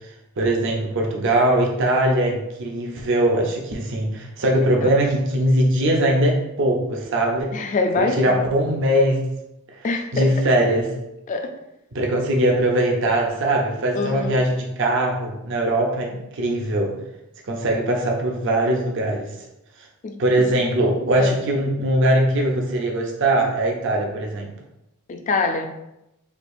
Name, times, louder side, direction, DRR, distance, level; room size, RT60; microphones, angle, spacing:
voice 1, 0.4-7.5 8.0-9.2 10.1-11.0 11.9-17.0 17.5-19.3 20.2-24.5, right 1 dB, 60° right, 0 dB, 0.6 m, -21 dB
voice 2, 4.5-4.9 7.5-8.4 9.8-10.3 11.3-11.5 13.9-14.3 20.0-20.4 21.2-21.3 25.1-25.7, left 3 dB, 35° left, 6 dB, 0.3 m, -25 dB
4.3 x 2.4 x 2.6 m, 0.88 s
head